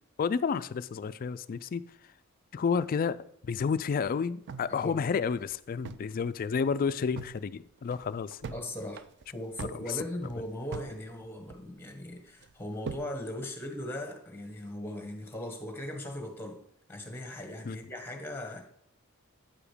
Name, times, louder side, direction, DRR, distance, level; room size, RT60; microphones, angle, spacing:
voice 1, 0.2-1.8 2.5-3.2 3.4-8.5 9.9-10.0 17.6-17.8, left 6 dB, 40° left, 0.3 m, -30 dB
sound 1, 4.5-6.2 6.5-6.6 6.9-7.4 7.8-8.6 8.9-11.0 11.2-11.9 12.4-13.1, right 5 dB, 50° right, 0.4 m, -42 dB
voice 2, 8.5-9.0 9.3-16.6 16.9-18.6, left 1 dB, 10° left, 1.2 m, -39 dB
8.8 x 5.0 x 5.0 m
head